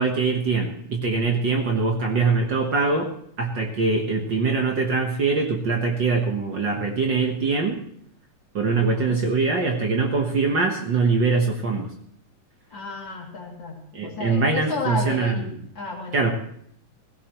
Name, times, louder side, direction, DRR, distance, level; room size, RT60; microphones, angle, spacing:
voice 1, 0.0-3.1 3.4-7.8 8.5-11.9 13.9-15.4 16.1-16.3, right 4 dB, 65° right, 2 dB, 1.1 m, -23 dB
voice 2, 8.7-9.2 12.7-15.5 15.7-16.3, left 3 dB, 35° left, -1 dB, 2.9 m, -32 dB
17.0 x 16.0 x 3.0 m, 0.66 s
omnidirectional pair, 3.9 m